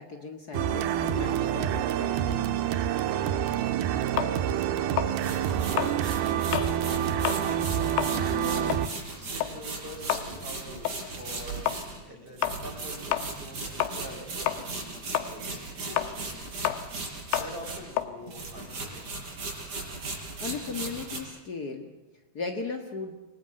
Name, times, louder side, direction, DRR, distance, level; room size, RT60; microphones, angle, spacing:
voice 1, 0.0-2.9 20.4-21.9 22.3-23.2, left 4 dB, 65° left, 4 dB, 0.9 m, -37 dB
sound 1, 0.5-8.9, right 10 dB, 75° right, 2.9 m, -27 dB
sound 2, 4.2-6.8 7.1-7.5 7.8-14.2 14.5-19.2, left 12 dB, 85° left, 3.4 m, -31 dB
voice 2, 4.3-11.6 12.0-17.0 17.4-19.3, equal, 10° right, 1 dB, 6.9 m, -46 dB
sound 3, 5.1-18.0 18.3-21.2, right 3 dB, 50° right, 7.6 m, -38 dB
29.0 x 20.5 x 7.8 m, 1.1 s
omnidirectional pair, 4.7 m